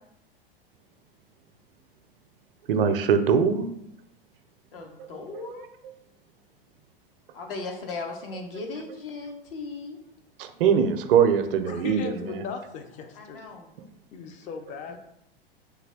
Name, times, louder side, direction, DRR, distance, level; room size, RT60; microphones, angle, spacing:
voice 1, 2.7-3.7 5.0-5.1 10.4-12.4, right 7 dB, 65° right, 8 dB, 0.5 m, -22 dB
voice 2, 4.7-5.6 7.3-10.0 13.1-13.7 14.9-15.0, left 3 dB, 65° left, 2 dB, 0.8 m, -37 dB
voice 3, 11.7-13.4 14.1-15.0, left 6 dB, 25° left, 7 dB, 0.4 m, -37 dB
3.4 x 2.2 x 3.4 m, 0.77 s
hypercardioid pair, 95°, 30 cm